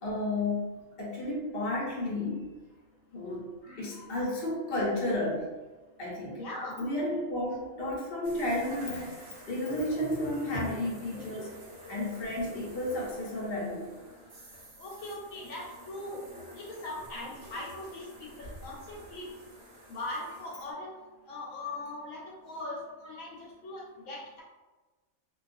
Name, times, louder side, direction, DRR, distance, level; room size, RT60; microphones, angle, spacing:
voice 1, 0.0-2.5 3.1-5.5 6.0-6.4 6.8-11.5 11.9-13.9, left 1 dB, 50° left, -5 dB, 0.8 m, -32 dB
voice 2, 6.4-6.8 11.1-11.4 14.8-16.2 16.6-19.3 19.9-20.9 21.3-23.4 23.6-24.2, left 2 dB, 75° left, -3 dB, 1.0 m, -40 dB
sound 1, 8.2-20.7, equal, 50° right, 0.7 m, -46 dB
2.3 x 2.2 x 2.5 m, 1.2 s
omnidirectional pair, 1.4 m